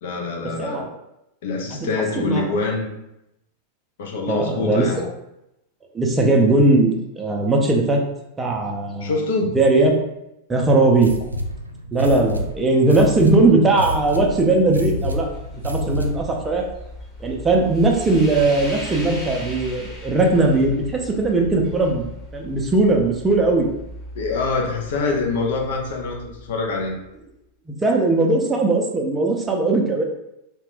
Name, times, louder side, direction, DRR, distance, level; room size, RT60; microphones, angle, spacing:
voice 1, 0.0-0.9 1.4-2.9 4.0-5.1 9.0-9.6 24.1-27.0, left 3 dB, 55° left, 1 dB, 0.5 m, -25 dB
voice 2, 0.6-0.9 1.7-1.9 2.2-2.5 4.3-4.9 5.9-8.0 8.4-9.1 9.5-9.9 10.5-11.1 11.9-15.3 15.6-16.6 17.2-22.1 22.3-23.7 27.8-30.0, right 2 dB, 15° right, 1 dB, 0.5 m, -19 dB
sound 1, 10.9-16.4, equal, 85° right, 0.3 m, -28 dB
sound 2, 13.5-27.3, left 1 dB, 5° left, 0.9 m, -38 dB
2.4 x 2.2 x 3.4 m, 0.84 s
figure-of-eight pair, 90°, 0 cm